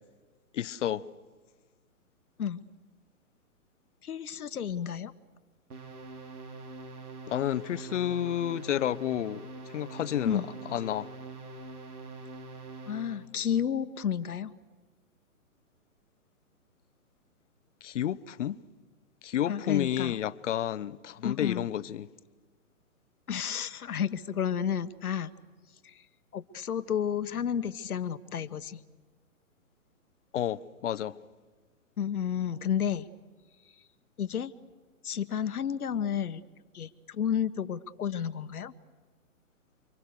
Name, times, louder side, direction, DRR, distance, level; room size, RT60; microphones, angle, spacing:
voice 1, 0.5-1.1 7.3-9.4 9.7-10.4 10.7-11.1 17.8-18.6 19.2-22.1 30.3-31.2, left 11 dB, 55° left, 0.9 m, -30 dB
voice 2, 4.0-5.1 10.2-10.5 12.9-14.6 19.5-20.1 21.2-21.7 23.3-25.3 25.8-26.0 26.3-28.8 32.0-33.1 34.2-34.5 35.0-36.4 36.7-38.7, left 8 dB, 75° left, 1.4 m, -31 dB
sound 1, 5.7-13.3, right 2 dB, 85° right, 4.0 m, -44 dB
29.5 x 25.0 x 6.7 m
hypercardioid pair, 150°, 44 cm